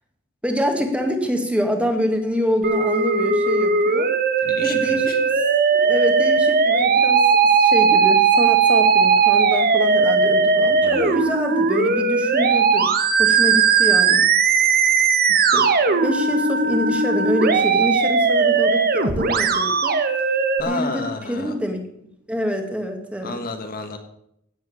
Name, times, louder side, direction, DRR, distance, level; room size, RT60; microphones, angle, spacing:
voice 1, 0.4-4.1 4.6-5.1 5.7-12.9 13.2-14.2 15.3-20.0 20.7-21.8 22.3-23.4, equal, 5° right, 4 dB, 2.1 m, -26 dB
Musical instrument, 2.6-20.6, right 5 dB, 45° right, 1.3 m, -18 dB
voice 2, 4.4-5.2 10.8-11.2 20.6-21.6 23.2-24.0, left 3 dB, 45° left, 6 dB, 1.6 m, -31 dB
16.5 x 7.6 x 7.1 m, 0.75 s
head